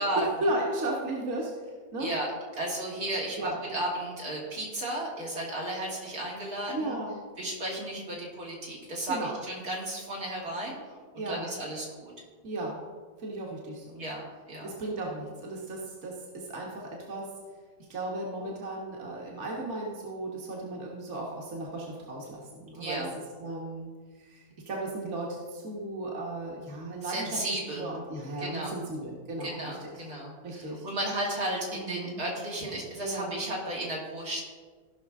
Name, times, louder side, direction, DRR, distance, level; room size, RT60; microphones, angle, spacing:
voice 1, 0.0-1.5 1.9-2.1 3.4-3.6 6.7-7.2 9.1-9.3 11.2-11.6 12.4-12.8 13.2-14.0 14.6-17.3 17.9-23.9 24.2-27.3 27.7-29.9 30.4-30.9 31.7-32.2 33.0-33.4, right 2 dB, 50° right, -3 dB, 1.7 m, -35 dB
voice 2, 2.0-2.3 2.6-7.0 7.4-10.8 11.1-12.1 14.0-14.2 14.5-14.7 22.8-23.1 27.0-27.9 28.4-28.7 29.4-34.4, right 1 dB, 80° right, -4 dB, 3.0 m, -34 dB
16.0 x 5.8 x 3.6 m, 1.5 s
omnidirectional pair, 1.6 m